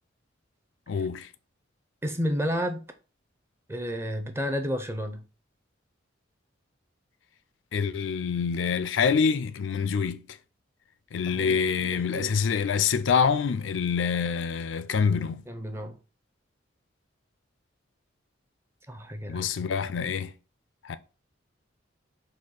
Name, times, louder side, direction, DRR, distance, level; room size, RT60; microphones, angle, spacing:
voice 1, 0.9-1.3 7.7-10.4 11.1-15.5 19.3-20.3 20.8-21.0, left 6 dB, 75° left, 0.4 m, -26 dB
voice 2, 2.0-2.8 3.7-5.2 11.3-12.3 15.5-16.0 18.9-19.4, equal, 15° right, 0.5 m, -31 dB
4.2 x 2.7 x 3.9 m
head